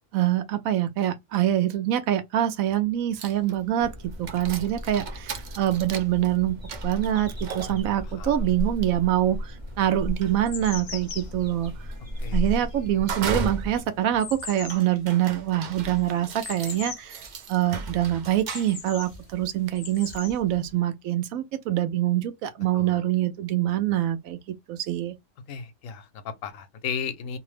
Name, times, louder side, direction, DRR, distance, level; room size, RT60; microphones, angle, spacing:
voice 1, 0.1-6.6 6.8-11.7 12.3-17.2 17.5-24.4 24.7-25.2, right 12 dB, 90° right, 1.0 m, -25 dB
sound 1, 3.2-20.8, right 4 dB, 70° right, 0.4 m, -38 dB
sound 2, 3.8-13.8, equal, 25° right, 0.8 m, -35 dB
sound 3, 9.3-9.4 10.0-17.2 17.5-17.6 18.0-19.1 19.6-20.4, left 7 dB, 60° left, 0.5 m, -41 dB
voice 2, 25.5-27.4, left 7 dB, 75° left, 1.0 m, -35 dB
2.8 x 2.0 x 3.1 m
omnidirectional pair, 1.4 m